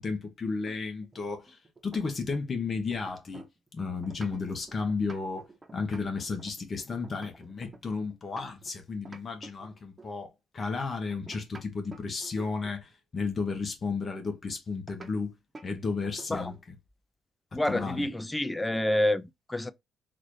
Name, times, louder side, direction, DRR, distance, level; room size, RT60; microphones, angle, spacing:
voice 1, 0.0-3.5 3.7-15.3 15.6-16.8 17.5-18.1, left 4 dB, 45° left, 1.1 m, -33 dB
sound 1, 0.6-2.6 2.9-8.7 9.0-10.2 11.1-12.9 14.9-15.1 15.5-15.7 16.0-16.7, right 3 dB, 30° right, 0.9 m, -50 dB
voice 2, 17.5-19.7, left 1 dB, 15° left, 0.5 m, -28 dB
4.0 x 2.5 x 3.2 m
cardioid pair, 75°, 0 cm